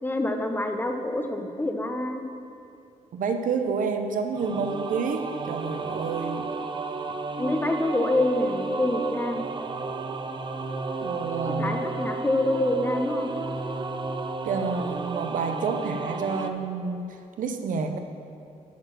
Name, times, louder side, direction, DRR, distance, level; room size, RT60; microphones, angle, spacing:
voice 1, 0.0-2.2 7.3-9.4 11.5-13.3, left 1 dB, 15° left, 5 dB, 0.8 m, -26 dB
voice 2, 3.1-6.5 11.0-11.8 14.4-18.0, right 5 dB, 70° right, 6 dB, 0.7 m, -29 dB
sound 1, 4.3-16.5, right 3 dB, 35° right, 0.6 m, -33 dB
8.3 x 4.5 x 6.2 m, 2.6 s
cardioid pair, 70°, 14 cm